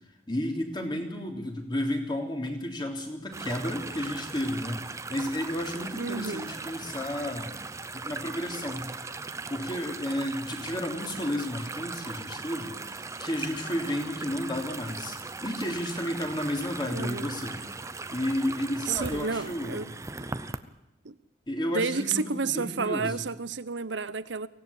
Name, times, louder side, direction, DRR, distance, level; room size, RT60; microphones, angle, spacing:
voice 1, 0.3-7.6 7.9-8.9 9.5-17.6 18.1-19.9 21.5-23.1, left 1 dB, 25° left, 3.4 m, -32 dB
sound 1, 3.3-20.6, right 3 dB, 15° right, 0.8 m, -39 dB
voice 2, 6.0-6.5 16.9-17.3 18.9-19.9 20.2-20.3 21.0-21.2 21.7-24.5, right 4 dB, 85° right, 1.0 m, -31 dB
24.0 x 17.0 x 8.7 m
head